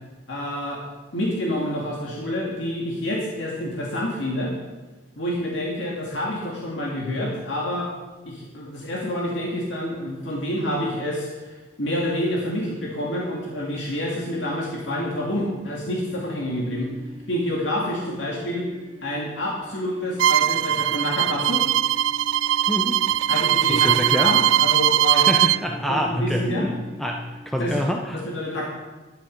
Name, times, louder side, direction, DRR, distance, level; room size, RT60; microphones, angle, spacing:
voice 1, 0.3-0.8 1.1-4.5 5.2-7.9 8.3-16.9 17.3-18.7 19.0-21.6 23.3-25.3 25.7-26.7 27.6-27.8 28.1-28.7, left 1 dB, 80° left, -3 dB, 2.3 m, -28 dB
sound 1, 13.7-27.7, right 1 dB, 30° right, 1.3 m, -45 dB
Bowed string instrument, 20.2-25.6, right 11 dB, 85° right, 0.3 m, -20 dB
voice 2, 22.7-23.0 23.3-24.3 25.1-28.2, equal, ahead, 1 dB, 0.8 m, -26 dB
11.5 x 11.0 x 5.4 m, 1.2 s
head